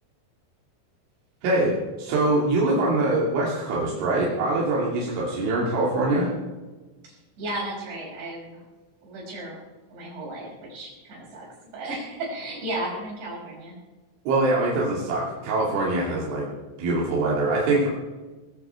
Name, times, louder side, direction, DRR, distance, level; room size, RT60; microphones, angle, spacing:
voice 1, 1.4-1.7 2.0-6.3 14.3-16.5 16.8-17.9, right 2 dB, 90° right, -5 dB, 5.2 m, -23 dB
voice 2, 7.0-8.6 9.0-9.6 9.9-11.5 11.7-13.7, right 1 dB, 70° right, -3 dB, 8.3 m, -34 dB
20.5 x 14.5 x 4.6 m, 1.2 s
omnidirectional pair, 5.3 m